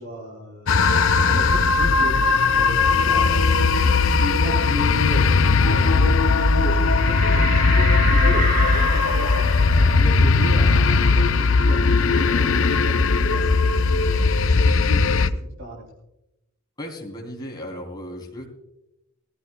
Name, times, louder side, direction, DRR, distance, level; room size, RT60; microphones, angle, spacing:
voice 1, 0.0-15.8, equal, 65° right, -1 dB, 3.1 m, -35 dB
sound 1, 0.7-15.3, left 4 dB, 60° left, 0.5 m, -18 dB
sound 2, 6.9-12.1 12.4-12.5 12.8-14.5, right 1 dB, 40° right, 3.3 m, -31 dB
voice 2, 16.8-18.5, equal, 20° left, -1 dB, 2.9 m, -35 dB
20.5 x 14.0 x 2.2 m, 0.91 s
head